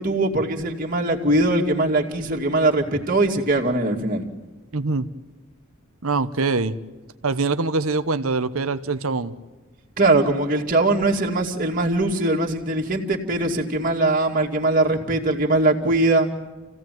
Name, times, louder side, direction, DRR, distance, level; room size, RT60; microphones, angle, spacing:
voice 1, 0.0-4.3 10.0-16.3, right 2 dB, 40° right, -1 dB, 2.5 m, -21 dB
voice 2, 4.7-5.1 6.0-6.7 7.2-9.3, right 3 dB, 85° right, 12 dB, 1.0 m, -23 dB
28.0 x 16.5 x 9.3 m, 1.2 s
head